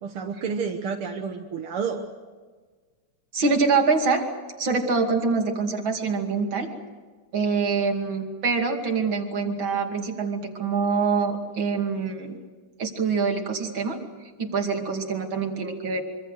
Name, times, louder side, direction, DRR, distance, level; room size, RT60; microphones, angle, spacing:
voice 1, 0.0-2.0, right 5 dB, 85° right, 3 dB, 2.2 m, -30 dB
voice 2, 3.3-4.2 4.6-6.7 7.3-12.4 12.8-14.0 14.4-16.0, right 4 dB, 65° right, 3 dB, 3.3 m, -25 dB
25.5 x 25.0 x 6.4 m, 1.4 s
omnidirectional pair, 2.4 m